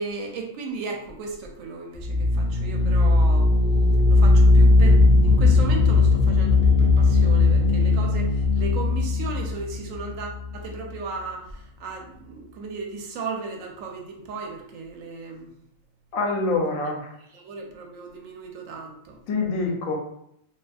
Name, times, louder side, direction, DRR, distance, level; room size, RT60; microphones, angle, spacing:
voice 1, 0.0-3.5 4.1-15.5 17.3-19.2, right 4 dB, 75° right, 2 dB, 1.0 m, -35 dB
sound 1, 1.9-10.6, left 3 dB, 65° left, 0.4 m, -18 dB
voice 2, 16.1-17.1 19.3-20.0, left 3 dB, 85° left, 1 dB, 1.0 m, -25 dB
2.5 x 2.5 x 2.3 m, 0.74 s
omnidirectional pair, 1.4 m